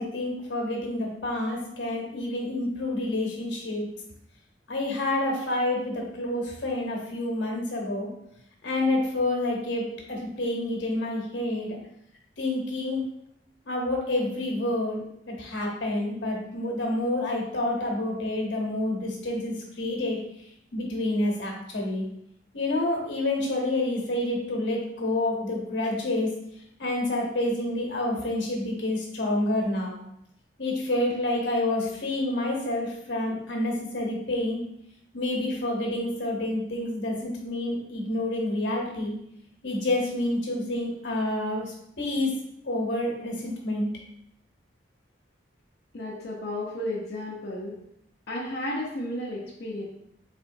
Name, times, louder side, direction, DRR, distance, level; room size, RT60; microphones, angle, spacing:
voice 1, 0.0-3.9 4.7-8.1 8.6-11.8 12.4-13.0 13.6-15.0 15.3-20.2 20.7-22.0 22.5-26.3 26.8-30.0 30.6-34.6 35.1-39.1 39.6-42.3 42.6-43.9, left 1 dB, 80° left, -1 dB, 1.0 m, -28 dB
voice 2, 45.9-47.7 48.3-49.9, left 1 dB, 60° left, -6 dB, 0.6 m, -33 dB
4.2 x 2.9 x 2.6 m, 0.76 s
head